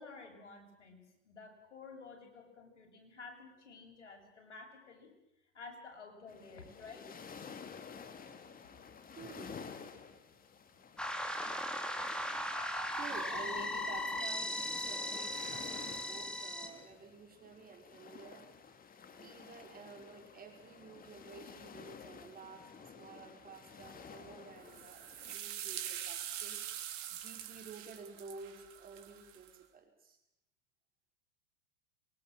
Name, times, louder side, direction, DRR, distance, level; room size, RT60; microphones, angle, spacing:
voice 1, 0.0-5.1 5.5-7.1, left 4 dB, 85° left, 3 dB, 7.5 m, -52 dB
sound 1, 6.3-25.4, left 6 dB, 25° left, 2.5 m, -52 dB
voice 2, 9.2-9.8 10.1-10.2 12.9-18.5 19.1-30.2, right 4 dB, 25° right, 4 dB, 5.8 m, -52 dB
sound 2, 11.0-16.7, left 1 dB, ahead, 3.7 m, -38 dB
sound 3, 24.6-29.5, right 11 dB, 60° right, 3.4 m, -44 dB
25.5 x 22.5 x 7.8 m, 0.83 s
hypercardioid pair, 100°, 35 cm